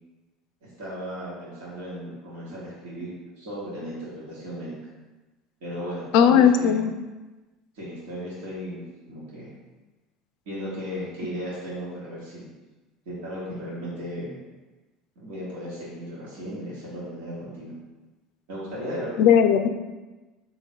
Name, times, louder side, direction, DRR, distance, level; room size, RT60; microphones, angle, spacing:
voice 1, 0.6-4.8 5.6-6.8 7.7-9.5 10.4-12.5 13.0-14.4 15.1-17.7 18.5-19.1, equal, 80° right, -7 dB, 1.4 m, -36 dB
voice 2, 6.1-6.9 19.2-19.7, left 8 dB, 70° left, 8 dB, 0.3 m, -17 dB
3.6 x 2.9 x 4.5 m, 1.2 s
supercardioid pair, 100°, 0 cm